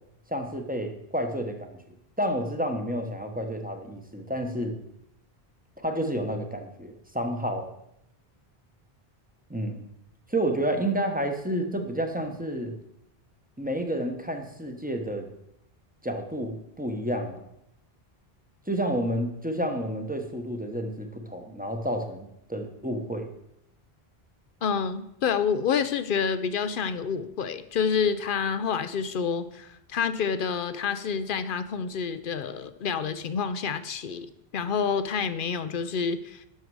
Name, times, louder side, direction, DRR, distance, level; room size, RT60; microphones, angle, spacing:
voice 1, 0.3-1.7 2.2-4.8 5.8-7.7 9.5-9.8 10.3-12.8 13.6-15.3 16.0-17.4 18.7-23.3, right 1 dB, 10° right, 4 dB, 1.0 m, -30 dB
voice 2, 24.6-34.3 34.5-36.4, left 6 dB, 60° left, 13 dB, 0.7 m, -28 dB
11.0 x 6.6 x 4.8 m, 0.80 s
omnidirectional pair, 1.0 m